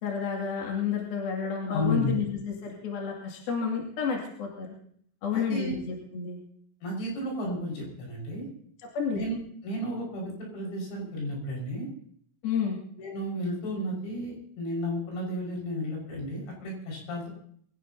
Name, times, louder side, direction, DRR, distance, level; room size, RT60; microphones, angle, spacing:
voice 1, 0.0-4.7 5.2-6.4 9.0-9.2 12.4-12.8, left 6 dB, 55° left, -1 dB, 3.9 m, -30 dB
voice 2, 1.7-2.1 5.3-5.7 6.8-8.5 9.1-9.4 9.6-11.9 13.0-17.3, left 1 dB, 75° left, -2 dB, 8.0 m, -33 dB
25.0 x 16.5 x 2.8 m, 0.62 s
omnidirectional pair, 5.7 m